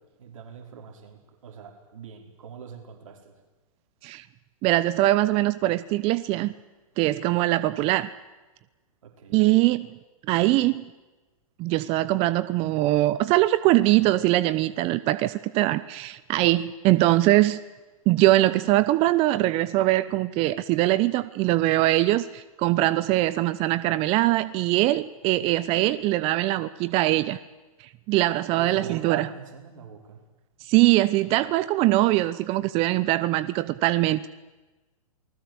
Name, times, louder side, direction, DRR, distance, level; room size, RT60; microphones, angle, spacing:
voice 1, 0.2-3.4 7.7-7.8 9.0-9.4 28.6-30.2, right 6 dB, 65° right, 3 dB, 4.9 m, -44 dB
voice 2, 4.6-6.5 7.0-8.1 9.3-10.0 10.3-10.8 11.6-17.6 18.1-27.4 28.1-29.3 30.7-34.3, right 17 dB, 30° right, 15 dB, 0.8 m, -22 dB
29.0 x 20.0 x 8.1 m, 1.2 s
hypercardioid pair, 120°, 18 cm